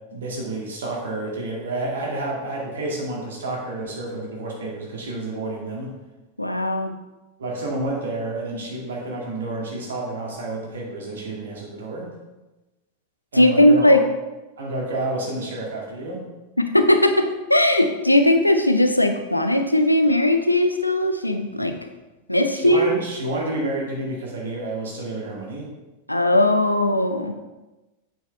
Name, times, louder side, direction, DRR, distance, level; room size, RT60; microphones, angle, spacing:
voice 1, 0.1-5.9 7.4-12.1 13.3-14.0 14.6-16.3 22.5-25.7, right 2 dB, 65° right, -2 dB, 2.2 m, -29 dB
voice 2, 6.4-6.9 13.3-14.0 16.6-21.8 22.3-23.0 26.1-27.3, left 1 dB, 85° left, 7 dB, 0.6 m, -18 dB
8.1 x 6.4 x 3.4 m, 1.1 s
figure-of-eight pair, 90°, 0 cm